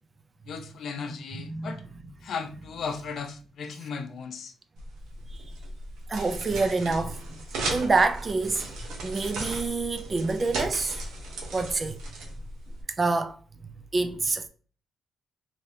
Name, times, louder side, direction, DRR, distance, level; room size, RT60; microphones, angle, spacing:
voice 1, 0.5-1.8 2.2-4.5, left 5 dB, 60° left, 0.5 m, -36 dB
voice 2, 1.5-1.8 5.3-5.4 6.1-7.3 7.7-8.7 9.0-11.0 11.5-12.0 13.0-13.4 13.9-14.5, right 3 dB, 30° right, 0.4 m, -27 dB
sound 1, 4.8-12.8, right 2 dB, 85° right, 0.9 m, -36 dB
3.2 x 2.8 x 2.6 m
cardioid pair, 90°, 0 cm